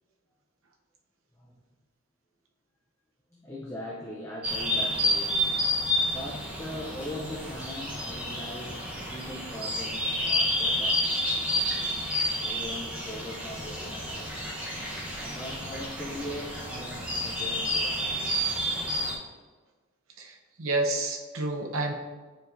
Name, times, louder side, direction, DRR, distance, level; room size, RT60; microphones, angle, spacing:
voice 1, 3.3-5.4 6.0-14.4 15.1-18.3, left 1 dB, 15° left, -4 dB, 0.5 m, -41 dB
sound 1, 4.4-19.2, equal, 5° right, 0.9 m, -30 dB
voice 2, 20.2-21.9, right 2 dB, 80° right, 3 dB, 0.8 m, -29 dB
9.4 x 4.6 x 2.6 m, 1.3 s
head